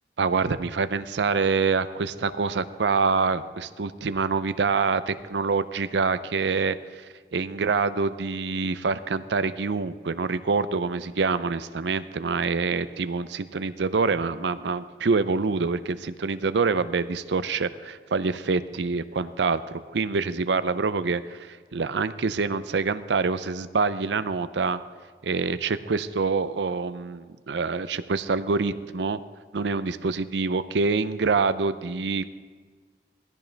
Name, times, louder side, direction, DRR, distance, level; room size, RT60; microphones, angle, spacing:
voice 1, 0.2-6.8 7.3-24.8 25.2-29.2 29.5-32.2, right 4 dB, 85° right, 13 dB, 0.6 m, -26 dB
17.0 x 14.5 x 3.4 m, 1.5 s
head